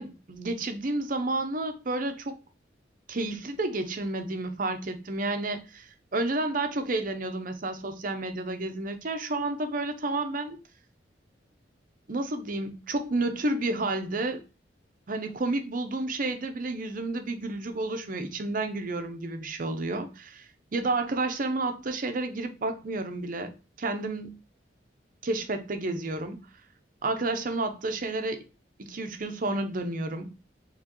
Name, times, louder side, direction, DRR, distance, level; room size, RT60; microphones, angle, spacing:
voice 1, 0.0-2.4 3.1-10.6 12.1-14.4 15.1-24.3 25.2-26.4 27.0-28.4 28.8-30.3, right 2 dB, 50° right, 0.7 m, -31 dB
4.7 x 3.1 x 2.9 m
head